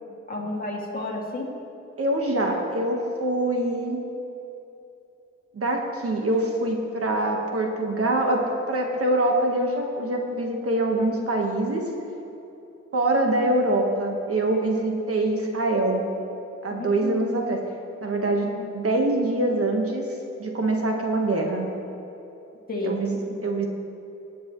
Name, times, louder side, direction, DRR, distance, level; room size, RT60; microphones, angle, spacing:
voice 1, 0.3-1.5 16.7-17.6 18.6-18.7 22.7-23.0, left 2 dB, 30° left, -3 dB, 2.3 m, -32 dB
voice 2, 2.0-4.0 5.5-11.8 12.9-16.0 16.6-17.6 18.0-20.1 20.4-21.7 22.8-23.7, right 1 dB, 50° right, 1 dB, 1.3 m, -24 dB
18.5 x 8.2 x 3.1 m, 3.0 s
cardioid pair, 95°, 30 cm